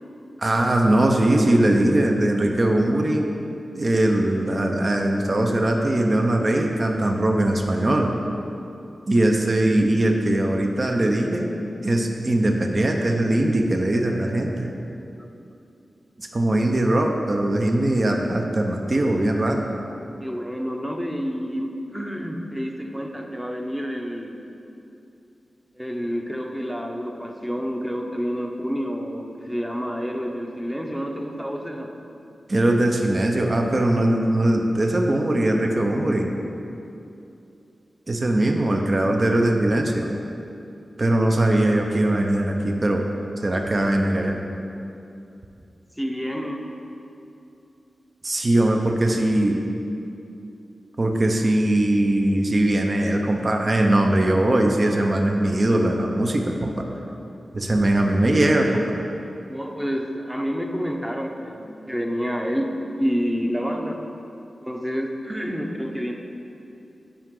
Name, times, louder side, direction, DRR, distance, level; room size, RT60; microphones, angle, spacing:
voice 1, 0.4-3.2 3.7-8.1 9.1-11.5 11.8-14.7 16.2-19.7 32.5-36.3 38.1-40.1 41.0-43.1 43.4-44.4 48.2-49.6 51.0-56.9 57.5-59.0, right 1 dB, 40° right, 2 dB, 0.7 m, -21 dB
voice 2, 20.2-24.4 25.7-31.9 46.0-46.6 59.5-62.7 62.9-64.0 64.6-66.1, equal, 5° right, 2 dB, 0.8 m, -28 dB
12.5 x 4.9 x 3.8 m, 2.8 s
wide cardioid pair, 95°, 0 cm